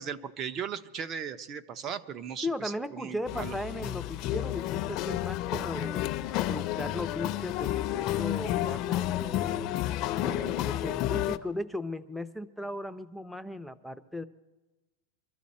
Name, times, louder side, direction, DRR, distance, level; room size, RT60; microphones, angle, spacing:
voice 1, 0.0-3.5, right 7 dB, 30° right, 11 dB, 0.8 m, -37 dB
voice 2, 2.4-6.1 6.5-9.7 10.2-14.2, left 1 dB, ahead, 12 dB, 0.6 m, -37 dB
sound 1, 3.3-11.4, left 13 dB, 40° left, 0.6 m, -31 dB
24.0 x 13.5 x 4.3 m, 1.1 s
supercardioid pair, 145°, 0 cm